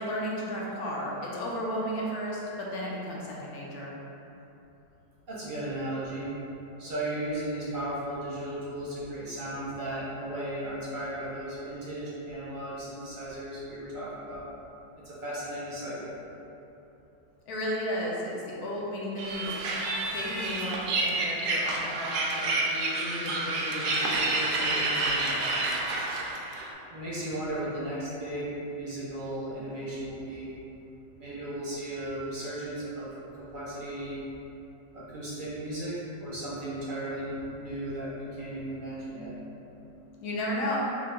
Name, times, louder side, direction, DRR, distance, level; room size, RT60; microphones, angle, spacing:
voice 1, 0.0-3.9 17.5-19.6 20.1-25.5 40.2-40.8, left 1 dB, 65° left, -4 dB, 1.1 m, -34 dB
voice 2, 5.3-6.3 6.8-14.4 15.0-16.1 26.9-30.5 31.2-34.2 34.9-39.3, right 1 dB, 40° right, -9 dB, 0.8 m, -35 dB
sound 1, 19.2-26.7, right 2 dB, 70° right, 1.0 m, -29 dB
5.6 x 2.1 x 3.6 m, 2.9 s
omnidirectional pair, 2.0 m